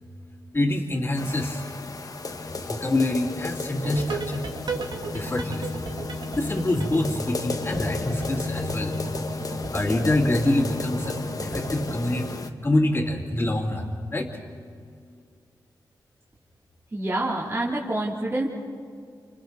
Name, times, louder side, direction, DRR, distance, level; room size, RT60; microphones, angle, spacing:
voice 1, 0.5-1.7 2.4-4.5 5.1-5.9 6.3-9.0 9.5-12.3 12.6-14.4, left 1 dB, 30° left, -7 dB, 2.6 m, -26 dB
sound 1, 1.2-12.5, left 3 dB, 50° left, 1.3 m, -33 dB
sound 2, 3.8-12.0, right 4 dB, 75° right, 1.7 m, -36 dB
voice 2, 16.9-18.5, right 1 dB, 30° right, -5 dB, 3.2 m, -27 dB
30.0 x 27.5 x 4.0 m, 2.2 s
cardioid pair, 70°, 8 cm